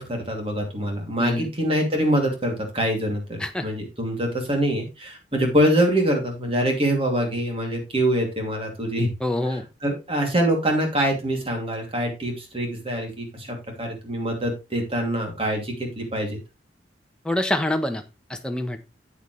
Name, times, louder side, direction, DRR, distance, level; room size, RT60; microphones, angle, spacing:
voice 1, 0.0-9.1 9.5-16.4, equal, 30° right, 2 dB, 2.8 m, -24 dB
voice 2, 9.2-9.6 17.2-18.0 18.3-18.8, left 1 dB, 5° left, 5 dB, 1.1 m, -25 dB
8.7 x 8.1 x 3.3 m, 0.26 s
head